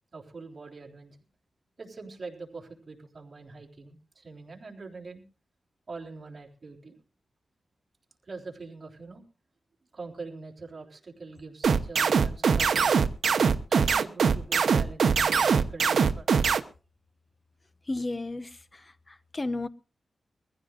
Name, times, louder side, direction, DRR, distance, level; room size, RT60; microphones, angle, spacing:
voice 1, 0.1-1.2 1.8-5.2 5.9-7.0 8.3-9.2 9.9-13.1 13.7-16.3, right 3 dB, 40° right, 3.7 m, -43 dB
sound 1, 11.6-16.6, right 6 dB, 75° right, 0.9 m, -22 dB
voice 2, 17.9-19.7, left 2 dB, 30° left, 0.9 m, -34 dB
23.0 x 15.0 x 2.4 m
wide cardioid pair, 100°, 0 cm